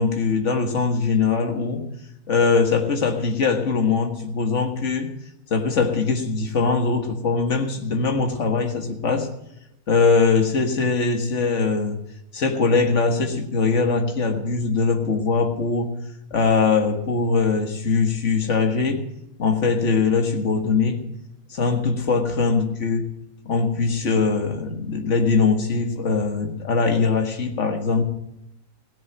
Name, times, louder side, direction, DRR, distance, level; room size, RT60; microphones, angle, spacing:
voice 1, 0.0-1.9 2.3-5.1 5.5-9.3 9.9-12.0 12.3-15.9 16.3-19.1 19.4-21.0 21.5-23.1 23.5-28.0, left 4 dB, 55° left, 3 dB, 1.9 m, -21 dB
17.0 x 7.4 x 9.0 m, 0.83 s
omnidirectional pair, 1.5 m